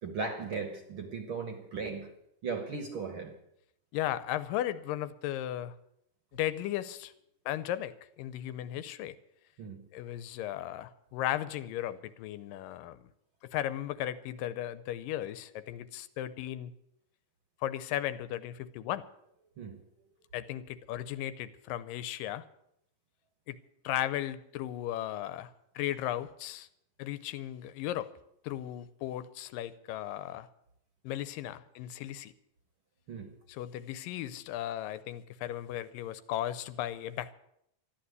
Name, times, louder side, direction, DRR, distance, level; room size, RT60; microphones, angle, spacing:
voice 1, 0.0-2.1 2.4-3.3 9.6-9.8 19.6-19.8 33.1-33.3, right 4 dB, 50° right, 1.8 m, -37 dB
voice 2, 3.9-5.8 6.3-7.1 7.5-9.2 9.9-13.0 13.4-16.7 17.6-19.1 20.3-22.4 23.5-23.6 23.8-25.5 25.8-26.7 27.0-28.1 28.4-30.5 31.0-32.3 33.5-37.3, left 12 dB, 90° left, 2.5 m, -36 dB
13.5 x 11.5 x 8.1 m
omnidirectional pair, 3.8 m